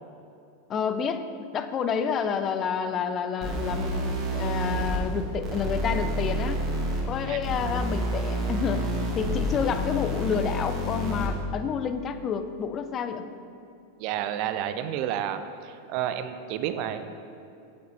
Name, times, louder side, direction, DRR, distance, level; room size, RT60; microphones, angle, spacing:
voice 1, 0.7-1.2 1.5-6.6 7.1-8.9 9.1-13.2, left 6 dB, 30° left, 10 dB, 0.5 m, -29 dB
sound 1, 3.4-11.4, equal, 30° right, 1.8 m, -29 dB
voice 2, 14.0-17.0, right 10 dB, 45° right, 10 dB, 0.5 m, -30 dB
8.2 x 7.7 x 4.1 m, 2.6 s
figure-of-eight pair, 90°, 0 cm